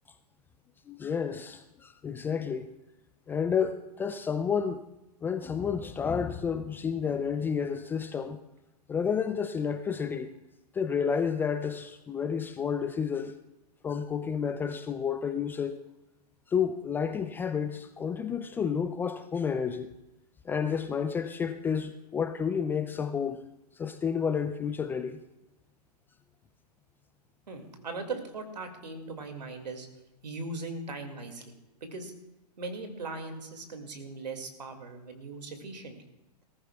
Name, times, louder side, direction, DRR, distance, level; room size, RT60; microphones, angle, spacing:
voice 1, 0.9-2.8 3.3-4.8 5.2-8.4 8.9-10.3 10.7-13.3 13.8-15.8 16.5-19.9 20.4-23.4 23.8-25.2, left 7 dB, 10° left, 0.3 m, -30 dB
voice 2, 27.5-29.9 30.2-31.4 31.8-32.1 32.6-36.0, right 3 dB, 80° right, 2.3 m, -39 dB
19.5 x 14.5 x 2.3 m
hypercardioid pair, 125°, 21 cm